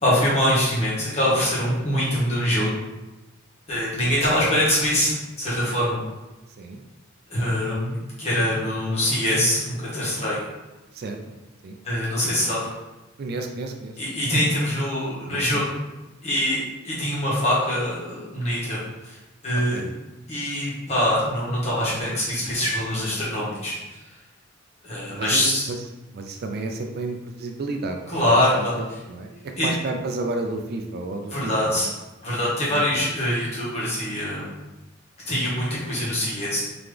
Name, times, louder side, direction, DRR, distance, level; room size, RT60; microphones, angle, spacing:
voice 1, 0.0-2.7 3.7-6.0 7.3-10.4 11.8-12.7 14.0-15.8 16.2-19.2 19.4-19.8 20.3-24.0 24.8-25.7 28.1-28.7 29.3-29.7 31.3-31.9 32.2-34.5 35.3-36.6, left 1 dB, 30° left, -8 dB, 1.5 m, -24 dB
voice 2, 10.9-11.4 11.6-11.8 13.2-14.0 15.3-15.6 19.7-19.9 25.1-25.8 26.1-31.9 32.7-33.0, right 2 dB, 50° right, 4 dB, 0.4 m, -32 dB
3.8 x 2.9 x 3.3 m, 1.0 s
head